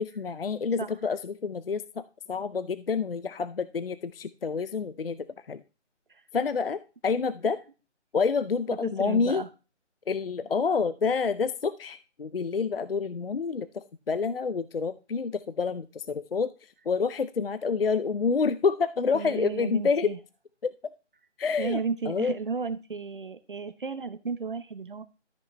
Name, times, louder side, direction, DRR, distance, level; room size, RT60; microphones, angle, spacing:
voice 1, 0.0-2.0 2.3-5.6 6.3-7.6 8.1-9.4 10.1-16.5 16.9-20.1 20.6-20.7 21.4-21.8 22.1-22.4, left 5 dB, 55° left, 14 dB, 0.5 m, -28 dB
voice 2, 8.8-9.5 19.1-20.2 21.6-25.0, right 5 dB, 45° right, 11 dB, 0.9 m, -33 dB
13.0 x 6.1 x 3.2 m, 0.32 s
hypercardioid pair, 175°, 36 cm